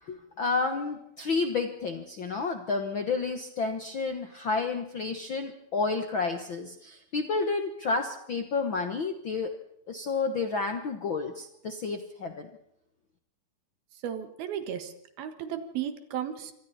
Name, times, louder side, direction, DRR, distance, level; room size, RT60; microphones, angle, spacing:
voice 1, 0.0-9.5 9.9-12.5, left 4 dB, 85° left, 6 dB, 1.0 m, -30 dB
voice 2, 14.0-16.5, right 9 dB, 75° right, 9 dB, 3.4 m, -35 dB
26.5 x 24.0 x 4.2 m, 0.79 s
omnidirectional pair, 4.3 m